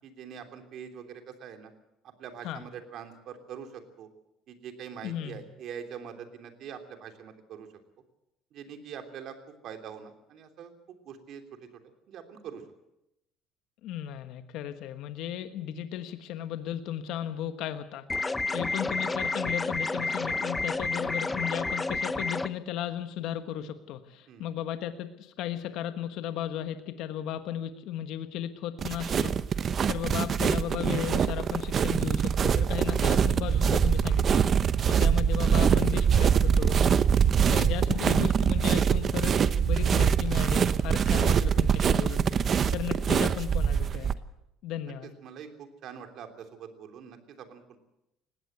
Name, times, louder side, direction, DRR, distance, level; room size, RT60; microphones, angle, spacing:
voice 1, 0.0-1.7 2.0-4.1 4.5-7.7 8.5-9.4 9.6-11.7 12.1-12.6 24.3-24.5 34.7-34.9 45.2-47.8, right 8 dB, 60° right, 6 dB, 3.2 m, -44 dB
voice 2, 5.0-5.4 13.8-18.0 18.5-29.4 29.9-34.5 34.9-37.0 37.5-42.2 42.7-44.1 44.6-45.1, left 10 dB, 70° left, 9 dB, 1.3 m, -35 dB
sound 1, 18.1-22.5, left 3 dB, 15° left, 0.8 m, -30 dB
sound 2, 28.8-44.1, right 7 dB, 40° right, 0.9 m, -24 dB
20.0 x 16.5 x 8.1 m, 0.85 s
cardioid pair, 105°, 0 cm